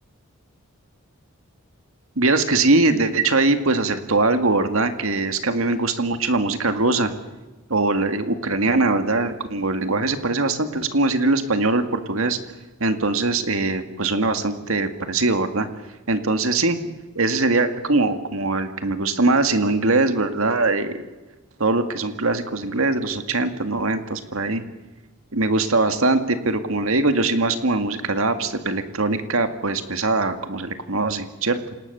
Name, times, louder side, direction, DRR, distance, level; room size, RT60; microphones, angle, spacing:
voice 1, 2.2-7.1 7.7-12.4 12.8-15.7 16.1-16.8 17.2-21.0 21.6-24.6 25.3-31.6, right 3 dB, 75° right, 8 dB, 2.1 m, -21 dB
27.0 x 19.0 x 6.9 m, 1.2 s
head